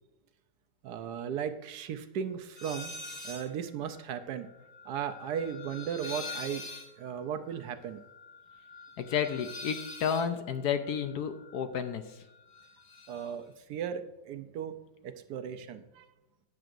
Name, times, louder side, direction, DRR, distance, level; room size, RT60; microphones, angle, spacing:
voice 1, 0.8-2.9 3.2-4.5 4.8-6.7 7.0-8.0 13.1-14.8 15.0-16.1, right 8 dB, 70° right, 9 dB, 1.1 m, -36 dB
sound 1, 2.6-3.5 3.8-12.0 12.3-13.3, left 3 dB, 45° left, 1.2 m, -45 dB
voice 2, 9.0-12.1, left 7 dB, 70° left, 9 dB, 1.2 m, -31 dB
13.5 x 9.1 x 2.6 m, 0.98 s
omnidirectional pair, 1.9 m